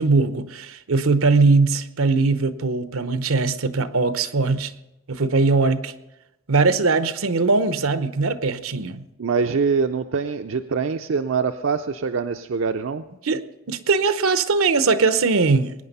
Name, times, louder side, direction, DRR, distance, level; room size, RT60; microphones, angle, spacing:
voice 1, 0.0-4.7 5.1-5.9 6.5-9.0 13.2-13.4 13.7-15.7, right 3 dB, 90° right, 0.8 m, -20 dB
voice 2, 9.2-13.0, right 5 dB, 70° right, 0.5 m, -24 dB
20.5 x 9.6 x 5.4 m
head